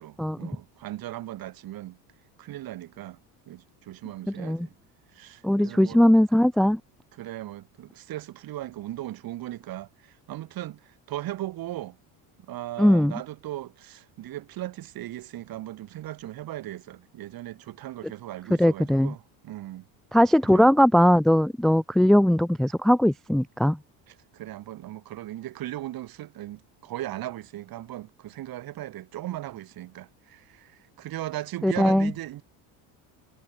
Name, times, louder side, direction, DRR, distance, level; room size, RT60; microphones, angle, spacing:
voice 1, 0.0-2.0 2.4-3.2 3.5-4.7 5.1-6.0 7.1-12.0 12.5-19.9 20.4-20.7 24.1-32.4, right 14 dB, 55° right, 7.6 m, -38 dB
voice 2, 5.4-6.8 12.8-13.1 18.6-19.1 20.1-23.8 31.6-32.1, equal, ahead, 0.4 m, -20 dB
cardioid pair, 125°, 42 cm